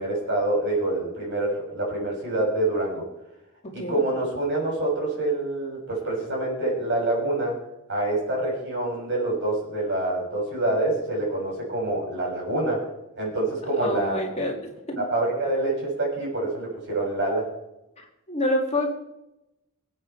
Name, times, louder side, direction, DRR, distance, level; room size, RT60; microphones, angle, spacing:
voice 1, 0.0-3.0 3.7-7.6 7.9-12.9 13.1-14.2 15.0-17.5, right 2 dB, 55° right, -2 dB, 6.6 m, -26 dB
voice 2, 13.8-15.0 18.3-18.9, left 1 dB, 30° left, 0 dB, 2.4 m, -27 dB
24.5 x 8.7 x 4.6 m, 0.91 s
head